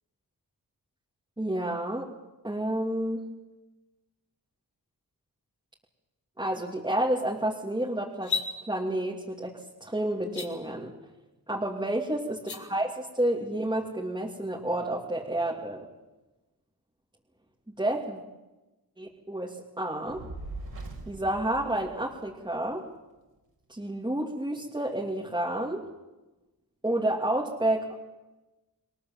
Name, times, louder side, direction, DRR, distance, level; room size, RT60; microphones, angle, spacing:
voice 1, 1.4-2.1 2.4-3.2 6.4-8.3 8.7-10.9 11.5-15.8 17.8-18.2 19.0-20.2 21.1-22.8 23.7-25.9 26.8-27.9, right 1 dB, 10° right, -2 dB, 2.7 m, -30 dB
sound 1, 8.1-8.5 10.2-10.5 12.3-12.6, left 4 dB, 80° left, 3.9 m, -31 dB
Fire, 20.1-22.5, right 2 dB, 70° right, 5.1 m, -41 dB
28.0 x 22.0 x 7.4 m, 1.1 s
wide cardioid pair, 120°, 38 cm